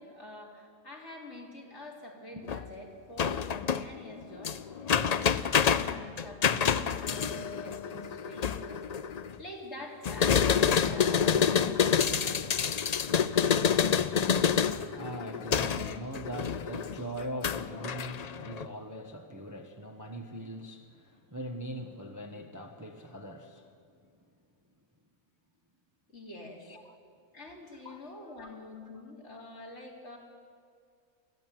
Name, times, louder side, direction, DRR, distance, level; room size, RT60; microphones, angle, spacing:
voice 1, 0.0-13.0 26.1-26.7 27.3-30.2, left 2 dB, 50° left, 3.8 m, -46 dB
sound 1, 2.5-2.7 3.2-9.3 10.0-18.7, left 7 dB, 80° left, 0.3 m, -28 dB
voice 2, 14.6-23.7 26.7-26.9 27.8-28.0 28.4-28.5, equal, 15° right, 1.2 m, -41 dB
23.0 x 15.0 x 9.2 m
omnidirectional pair, 1.5 m